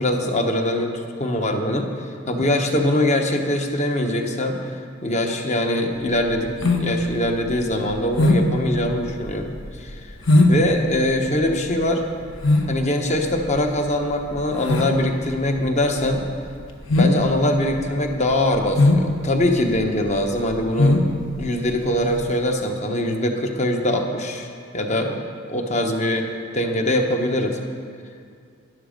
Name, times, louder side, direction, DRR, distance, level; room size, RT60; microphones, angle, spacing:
voice 1, 0.0-4.7 5.0-10.1 10.5-12.0 12.7-16.3 17.0-21.0 21.4-25.2 25.5-26.2 26.5-27.6, left 1 dB, 35° left, 3 dB, 1.1 m, -22 dB
sound 1, 6.0-22.4, left 2 dB, 65° left, 1.2 m, -22 dB
12.5 x 11.0 x 5.2 m, 2.3 s
head